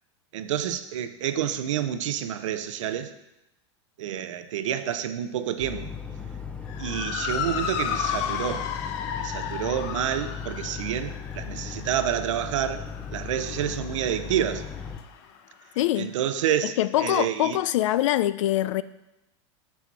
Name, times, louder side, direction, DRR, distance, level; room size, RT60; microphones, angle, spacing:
voice 1, 0.3-3.1 4.0-5.9 6.8-8.7 9.2-12.9 13.1-14.7 16.0-17.6, right 10 dB, 90° right, 0.6 m, -29 dB
sound 1, 5.6-15.0, left 7 dB, 5° left, 0.6 m, -37 dB
Motor vehicle (road) / Siren, 6.7-15.3, left 8 dB, 60° left, 0.8 m, -34 dB
voice 2, 15.8-16.1 16.6-18.8, left 14 dB, 80° left, 0.4 m, -24 dB
7.0 x 6.2 x 4.6 m
supercardioid pair, 130°, 16 cm